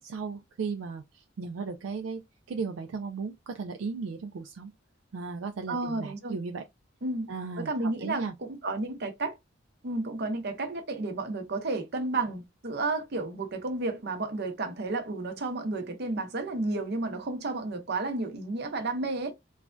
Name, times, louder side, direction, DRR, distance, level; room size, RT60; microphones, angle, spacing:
voice 1, 0.0-2.2 2.5-4.7 5.1-6.6 7.3-8.3, right 4 dB, 75° right, 0.4 m, -36 dB
voice 2, 5.7-6.4 7.0-7.3 7.6-9.4 9.8-19.3, right 2 dB, 55° right, 0.7 m, -32 dB
3.1 x 2.2 x 2.5 m
head